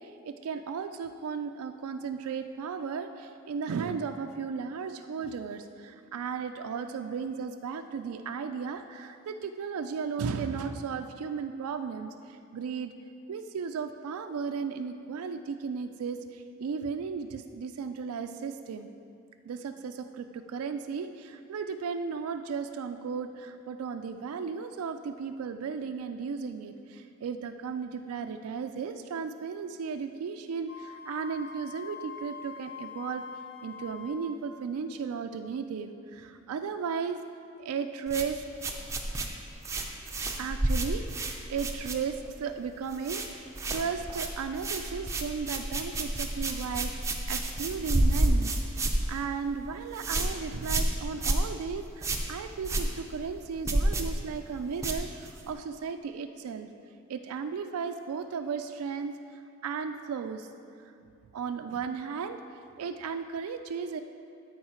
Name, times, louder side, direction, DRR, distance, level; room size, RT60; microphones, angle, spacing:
voice 1, 0.0-12.9 13.3-18.9 19.5-33.2 33.6-37.2 37.6-38.4 40.4-43.2 43.7-56.7 57.1-60.5 60.8-60.9 61.3-62.4 62.8-64.0, right 6 dB, 85° right, 7 dB, 0.4 m, -35 dB
Wind instrument woodwind instrument, 30.7-34.4, left 5 dB, 50° left, 0.6 m, -44 dB
sound 1, 38.1-42.4 42.7-43.3 43.5-55.5, right 1 dB, 15° right, 0.5 m, -30 dB
12.5 x 4.7 x 4.4 m, 2.5 s
head